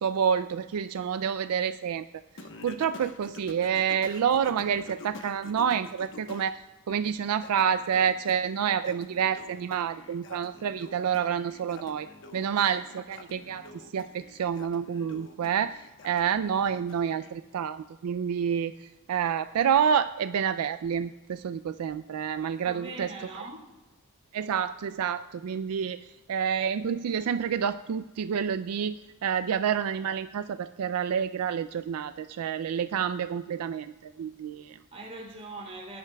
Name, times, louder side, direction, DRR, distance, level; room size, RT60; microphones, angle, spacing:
voice 1, 0.0-2.1 2.6-12.1 12.3-13.7 13.9-18.7 19.1-23.1 24.3-26.0 26.3-34.8, right 7 dB, 75° right, 11 dB, 0.4 m, -28 dB
Singing, 2.4-6.5 6.9-17.3, left 3 dB, 60° left, 1.1 m, -48 dB
voice 2, 12.3-12.9 22.6-23.7 34.9-36.0, right 2 dB, 30° right, -3 dB, 3.0 m, -42 dB
18.0 x 10.5 x 2.3 m, 1.1 s
head